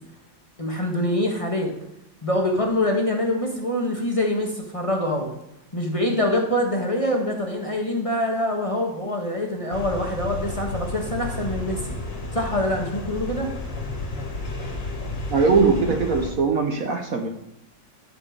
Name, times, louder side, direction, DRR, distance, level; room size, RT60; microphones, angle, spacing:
voice 1, 0.6-1.7 2.2-5.3 5.7-12.0 12.3-13.5, left 1 dB, 20° left, 1 dB, 1.4 m, -25 dB
sound 1, 9.7-16.3, left 2 dB, 70° left, 2.9 m, -32 dB
voice 2, 15.3-17.3, right 4 dB, 55° right, 5 dB, 1.2 m, -20 dB
12.5 x 5.9 x 6.6 m, 0.81 s
omnidirectional pair, 2.0 m